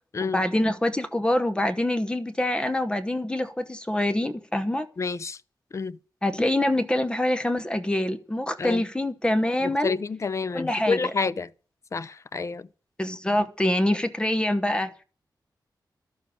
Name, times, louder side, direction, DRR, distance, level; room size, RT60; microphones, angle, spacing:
voice 1, 0.2-4.9 6.2-10.0 10.5-11.0 13.0-14.9, left 1 dB, 10° left, 1.0 m, -25 dB
voice 2, 5.0-5.4 5.7-6.0 8.6-8.8 9.6-11.5 11.9-12.7, left 4 dB, 40° left, 0.5 m, -29 dB
12.5 x 7.3 x 8.5 m
wide cardioid pair, 165°, 8 cm